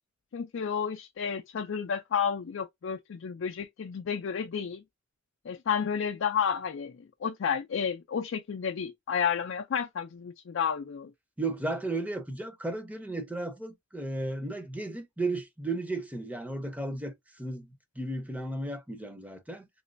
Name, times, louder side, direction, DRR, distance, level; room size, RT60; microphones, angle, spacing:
voice 1, 0.3-4.8 5.5-11.1, left 7 dB, 65° left, 0.4 m, -31 dB
voice 2, 11.4-19.7, right 2 dB, 5° right, 0.6 m, -34 dB
3.1 x 2.9 x 2.5 m
head